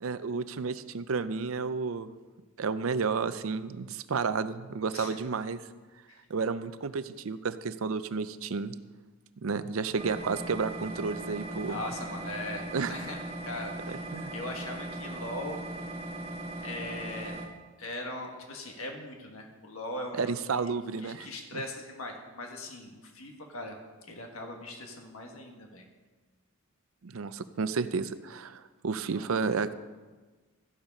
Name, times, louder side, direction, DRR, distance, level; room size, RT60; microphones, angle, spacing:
voice 1, 0.0-2.1 2.6-5.6 6.3-8.7 9.4-11.8 12.7-12.9 13.9-14.3 20.1-21.6 27.0-29.7, right 5 dB, 70° right, 13 dB, 0.5 m, -32 dB
sound 1, 10.0-17.5, right 2 dB, 25° right, 1.5 m, -39 dB
voice 2, 11.7-13.2 13.4-14.1 14.3-15.6 16.6-17.4 17.8-20.3 21.0-23.7 24.0-25.8 29.0-29.3, left 1 dB, 70° left, 2 dB, 1.5 m, -40 dB
13.5 x 7.2 x 5.3 m, 1.3 s
head